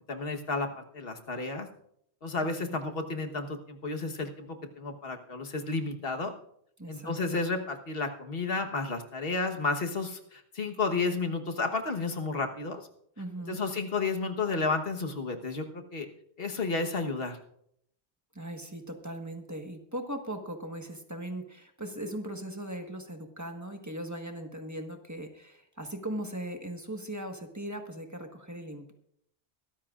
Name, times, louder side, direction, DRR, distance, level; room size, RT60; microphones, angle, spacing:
voice 1, 0.1-1.7 2.2-4.5 4.8-6.3 6.9-12.9 13.5-16.1 16.4-17.4, left 3 dB, 60° left, 4 dB, 1.5 m, -32 dB
voice 2, 2.4-2.8 6.8-7.1 13.2-13.6 18.3-28.9, right 1 dB, 15° right, 4 dB, 1.4 m, -39 dB
23.5 x 13.0 x 2.5 m, 0.72 s
omnidirectional pair, 1.1 m